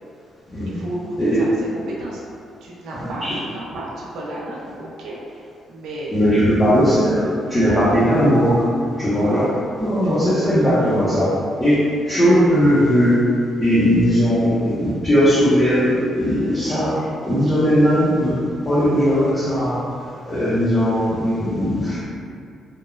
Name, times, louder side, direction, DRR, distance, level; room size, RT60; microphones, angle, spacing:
voice 1, 0.7-2.2 2.6-6.2 7.6-8.0 9.1-9.5 10.0-10.1, right 1 dB, 90° right, -5 dB, 0.4 m, -33 dB
voice 2, 3.0-3.3 6.1-7.2 7.5-8.7 9.0-9.5 9.8-13.2 13.6-19.8 20.3-22.0, equal, 15° left, -12 dB, 0.5 m, -18 dB
2.9 x 2.0 x 2.3 m, 2.4 s
cardioid pair, 165°, 0 cm